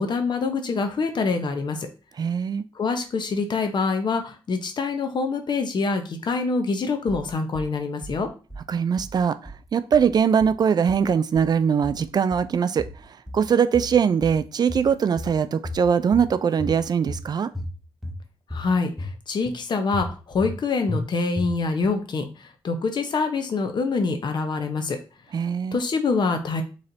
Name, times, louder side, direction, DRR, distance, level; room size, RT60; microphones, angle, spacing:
voice 1, 0.0-1.9 2.7-8.3 18.5-25.0 25.7-26.6, left 4 dB, 55° left, 6 dB, 0.8 m, -25 dB
voice 2, 2.2-2.6 8.7-12.9 13.3-17.5 25.3-25.8, right 7 dB, 50° right, 13 dB, 0.4 m, -21 dB
sound 1, 7.1-7.7 8.0-8.7 9.0-9.7 9.9-10.6 10.9-11.6 11.8-12.5 12.8-13.5 13.7-14.4 14.7-15.4 15.6-16.3 16.6-17.2 17.5-18.2 18.5-19.1 19.4-19.6 19.9-20.6 20.9-21.0 21.4-21.9, left 1 dB, ahead, 0.7 m, -34 dB
4.2 x 3.2 x 3.8 m, 0.34 s
cardioid pair, 100°, 9 cm